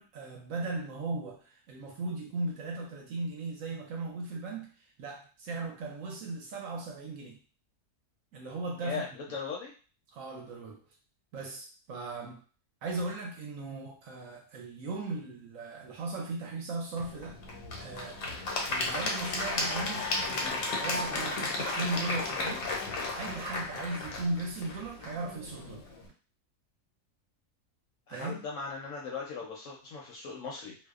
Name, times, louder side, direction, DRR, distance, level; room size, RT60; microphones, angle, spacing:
voice 1, 0.0-4.7 5.0-7.4 8.3-9.1 10.1-10.8 11.3-12.4 12.8-17.4 17.8-18.2 18.7-22.7 23.0-25.8 28.1-28.4, right 2 dB, 70° right, 0 dB, 0.9 m, -37 dB
voice 2, 8.8-9.7 28.1-30.8, left 5 dB, 70° left, -2 dB, 0.8 m, -38 dB
Applause / Crowd, 17.0-26.0, left 2 dB, 90° left, 1.2 m, -34 dB
2.6 x 2.0 x 2.3 m, 0.37 s
omnidirectional pair, 1.7 m